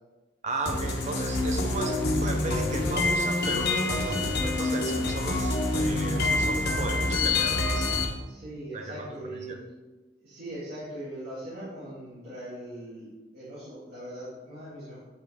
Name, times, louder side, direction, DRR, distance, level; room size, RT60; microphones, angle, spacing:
voice 1, 0.4-7.9 8.7-9.1 9.5-9.6, right 2 dB, 40° right, 4 dB, 0.7 m, -35 dB
sound 1, 0.7-8.0, left 2 dB, 60° left, 1.2 m, -26 dB
voice 2, 8.2-9.6 10.2-15.0, right 1 dB, 60° right, -11 dB, 2.8 m, -40 dB
8.3 x 6.4 x 3.6 m, 1.2 s
head